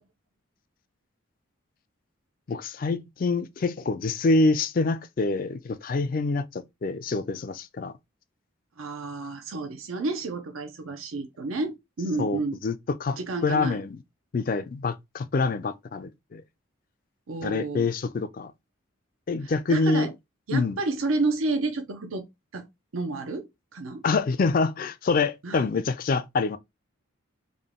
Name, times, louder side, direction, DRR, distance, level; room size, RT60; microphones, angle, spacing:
voice 1, 2.5-7.9 12.2-12.7 13.0-14.0 14.3-16.4 17.4-18.5 19.3-20.1 20.5-20.8 24.0-26.6, left 3 dB, 40° left, 0.3 m, -26 dB
voice 2, 8.8-12.6 13.2-13.8 17.3-17.9 19.4-20.1 20.5-22.3 22.5-22.7 22.9-24.0 25.4-25.7, right 3 dB, 80° right, 0.6 m, -30 dB
3.7 x 2.2 x 3.5 m
head